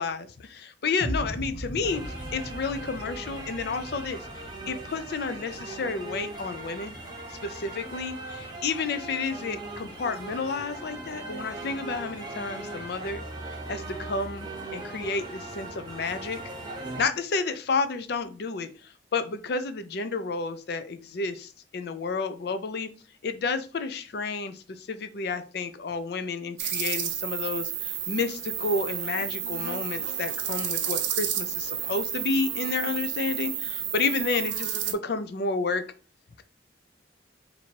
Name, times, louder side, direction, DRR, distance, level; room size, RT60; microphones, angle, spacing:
voice 1, 0.0-2.0 2.3-7.0 7.3-16.4 17.0-22.9 23.2-35.8, left 4 dB, 60° left, 10 dB, 0.4 m, -31 dB
sound 1, 1.0-7.0, equal, 90° left, 0.9 m, -39 dB
sound 2, 1.8-17.0, right 2 dB, 25° right, 0.8 m, -39 dB
sound 3, 26.6-34.9, right 9 dB, 85° right, 0.6 m, -31 dB
2.9 x 2.6 x 4.4 m, 0.36 s
head